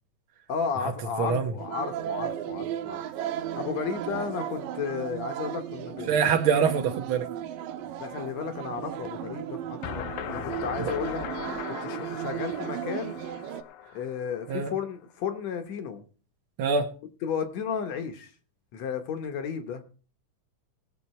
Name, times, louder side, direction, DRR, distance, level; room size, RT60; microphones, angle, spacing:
voice 1, 0.5-3.0 3.6-6.2 8.0-11.2 11.7-13.1 13.9-16.0 17.2-18.3 18.7-19.8, left 7 dB, 65° left, 2.0 m, -33 dB
voice 2, 1.2-1.5 6.1-7.2 14.5-14.7 16.6-16.9, right 6 dB, 70° right, 1.2 m, -24 dB
sound 1, 1.6-13.6, right 11 dB, 90° right, 2.5 m, -35 dB
sound 2, 9.8-14.8, left 11 dB, 85° left, 2.4 m, -39 dB
19.5 x 7.4 x 4.2 m
omnidirectional pair, 3.9 m